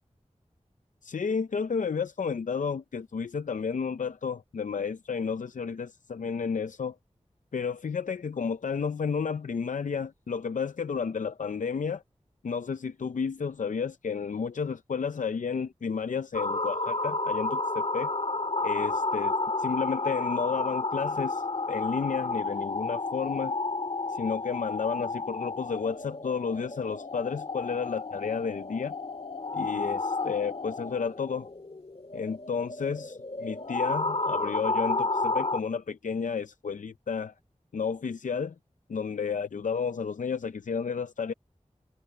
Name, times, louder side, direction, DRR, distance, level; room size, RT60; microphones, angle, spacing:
voice 1, 1.0-7.0 7.5-12.0 12.4-18.1 18.6-23.6 24.1-28.9 29.5-31.5 32.1-37.3 37.7-38.5 38.9-41.3, left 6 dB, 90° left, 0.5 m, -32 dB
sound 1, 16.3-35.6, left 3 dB, 50° left, 2.0 m, -31 dB
wide cardioid pair, 70°, 13 cm